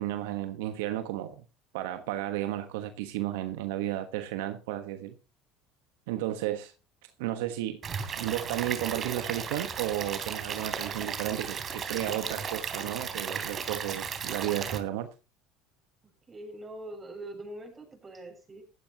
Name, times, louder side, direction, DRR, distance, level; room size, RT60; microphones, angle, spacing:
voice 1, 0.0-1.4 1.7-5.2 6.1-6.7 7.2-7.8 8.2-15.1, right 13 dB, 80° right, 1.3 m, -33 dB
Stream / Liquid, 7.8-14.8, right 6 dB, 40° right, 3.3 m, -35 dB
voice 2, 16.3-18.6, right 1 dB, 25° right, 6.9 m, -43 dB
15.0 x 14.0 x 3.0 m
hypercardioid pair, 85°, 0 cm